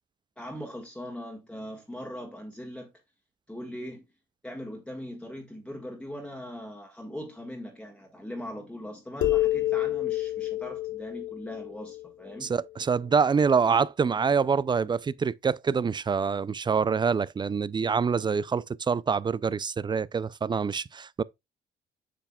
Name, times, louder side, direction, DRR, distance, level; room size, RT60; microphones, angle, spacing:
voice 1, 0.4-2.9 3.5-4.0 4.4-12.5, equal, 5° left, 1.7 m, -40 dB
sound 1, 9.2-12.7, left 15 dB, 75° left, 0.8 m, -29 dB
voice 2, 12.4-21.2, right 5 dB, 25° right, 0.3 m, -26 dB
8.4 x 5.8 x 2.3 m
cardioid pair, 90°, 20 cm